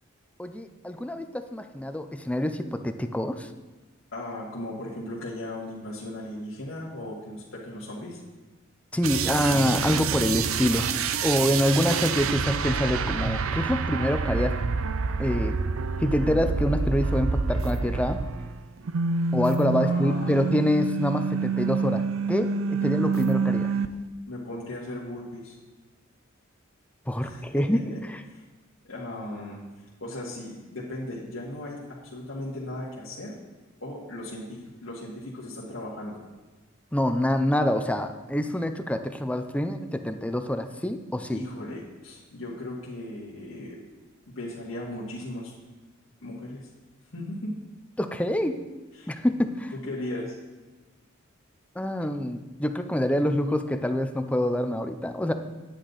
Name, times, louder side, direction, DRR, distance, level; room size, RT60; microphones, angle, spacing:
voice 1, 0.4-3.5 8.9-10.9 11.2-14.6 15.2-15.6 16.0-18.2 19.3-23.7 27.1-28.2 36.9-41.4 48.0-48.6 49.1-49.7 51.8-55.3, left 1 dB, 5° left, 8 dB, 0.5 m, -26 dB
voice 2, 4.1-8.2 19.8-20.6 22.8-22.9 24.3-25.5 27.2-27.6 27.9-28.0 28.3-28.4 28.8-29.6 30.0-31.8 32.1-33.3 33.8-36.2 41.3-43.8 44.3-45.5 46.2-46.7 47.1-47.6 48.9-49.1 49.8-50.4, left 1 dB, 70° left, -6 dB, 1.9 m, -37 dB
sound 1, 9.0-18.6 18.8-23.9, right 5 dB, 90° right, 0.5 m, -27 dB
9.7 x 8.8 x 4.0 m, 1.2 s
head